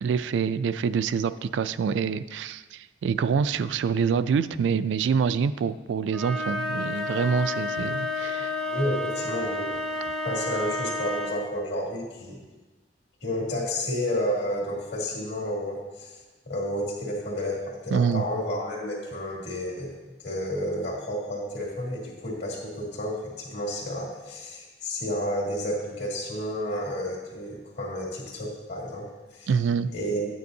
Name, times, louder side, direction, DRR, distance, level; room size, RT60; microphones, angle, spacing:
voice 1, 0.0-8.5 17.9-18.2 29.5-29.9, right 6 dB, 75° right, 13 dB, 0.3 m, -26 dB
sound 1, 6.1-11.6, left 2 dB, 5° left, 0.5 m, -31 dB
voice 2, 8.7-9.7 10.2-12.4 13.2-16.2 16.5-19.9 20.2-29.5 29.9-30.3, equal, 65° left, -3 dB, 2.1 m, -31 dB
9.3 x 9.2 x 2.7 m, 1.2 s
head